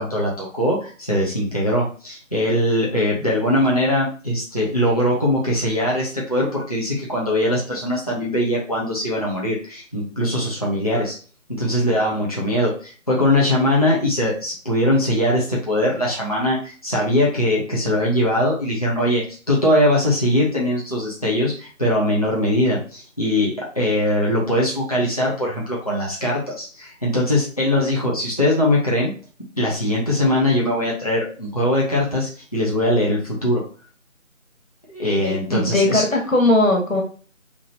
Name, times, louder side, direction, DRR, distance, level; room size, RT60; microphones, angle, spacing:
voice 1, 0.0-11.2 11.5-29.1 29.6-33.6 34.9-36.0, left 1 dB, 30° left, -5 dB, 0.7 m, -21 dB
voice 2, 35.2-37.0, left 2 dB, 80° left, 1 dB, 1.7 m, -19 dB
4.8 x 2.8 x 2.6 m, 0.40 s
figure-of-eight pair, 165°, 40 cm